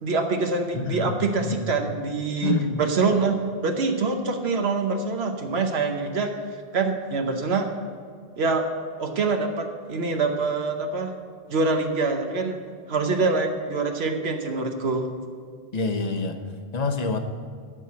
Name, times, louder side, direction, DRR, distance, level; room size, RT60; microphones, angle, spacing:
voice 1, 0.0-3.3 3.6-6.3 6.7-7.7 8.4-8.7 9.0-11.1 11.5-12.6 12.9-15.1, right 4 dB, 80° right, 4 dB, 1.1 m, -25 dB
voice 2, 0.7-1.6 2.4-2.8 15.7-16.4 16.7-17.2, left 3 dB, 45° left, 6 dB, 0.9 m, -27 dB
12.5 x 4.7 x 8.3 m, 2.1 s
omnidirectional pair, 1.0 m